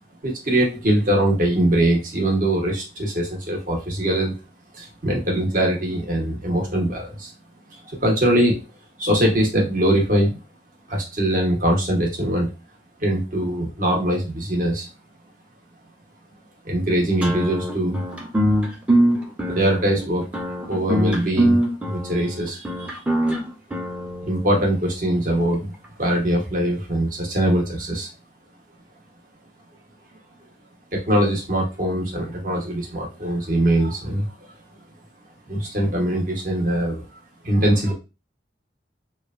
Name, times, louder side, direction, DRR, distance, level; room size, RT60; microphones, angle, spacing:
voice 1, 0.2-4.3 4.7-7.3 8.0-8.5 9.0-10.4 10.9-12.5 13.0-14.9 16.6-18.0 19.5-20.2 20.7-21.6 21.8-23.0 24.2-25.7 26.0-28.1 30.9-34.3 35.5-37.0 37.4-37.9, right 1 dB, 45° right, -1 dB, 0.9 m, -22 dB
sound 1, 17.2-24.6, right 1 dB, 5° right, 0.5 m, -23 dB
3.0 x 2.2 x 2.4 m, 0.28 s
head